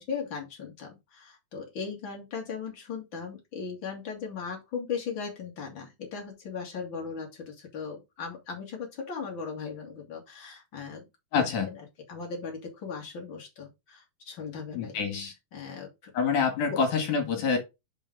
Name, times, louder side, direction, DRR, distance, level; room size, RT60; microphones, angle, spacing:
voice 1, 0.0-11.0 11.7-15.0 15.5-16.1 16.7-16.8, left 5 dB, 40° left, 2.4 m, -38 dB
voice 2, 11.3-11.7 14.7-15.3 16.1-17.6, left 5 dB, 60° left, 3.1 m, -26 dB
6.0 x 5.4 x 4.8 m
omnidirectional pair, 4.2 m